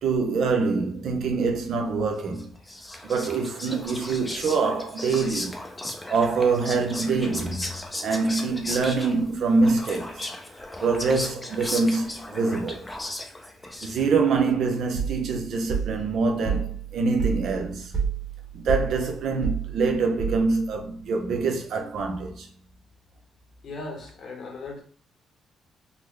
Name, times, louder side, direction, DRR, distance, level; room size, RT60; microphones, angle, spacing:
voice 1, 0.0-2.5 3.0-5.6 6.1-7.7 8.0-10.3 10.8-12.9 13.8-17.9 18.5-22.5, right 4 dB, 70° right, 0.7 m, -25 dB
Whispering, 2.4-14.3, left 1 dB, 15° left, 0.6 m, -36 dB
sound 1, 14.9-20.8, right 7 dB, 30° right, 1.3 m, -30 dB
voice 2, 23.6-24.8, left 3 dB, 55° left, 1.1 m, -37 dB
3.9 x 2.1 x 3.2 m
cardioid pair, 90°, 0 cm